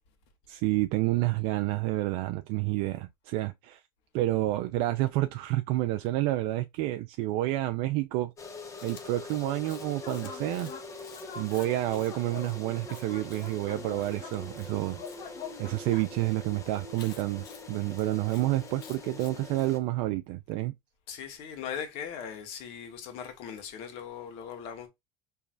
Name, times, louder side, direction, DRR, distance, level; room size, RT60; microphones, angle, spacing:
voice 1, 0.5-3.8 4.1-8.3 8.8-10.7 11.4-15.0 15.6-20.7, right 16 dB, 60° right, 0.4 m, -29 dB
sound 1, 8.4-19.8, left 3 dB, 25° left, 1.0 m, -44 dB
Chewing mastication, 8.8-15.2 16.9-19.7, left 7 dB, 85° left, 1.1 m, -53 dB
sound 2, 10.0-10.9 11.1-14.4 15.0-16.2, left 6 dB, 45° left, 1.3 m, -45 dB
voice 2, 21.1-24.9, left 8 dB, 60° left, 1.5 m, -39 dB
4.5 x 3.1 x 2.4 m
supercardioid pair, 105°, 11 cm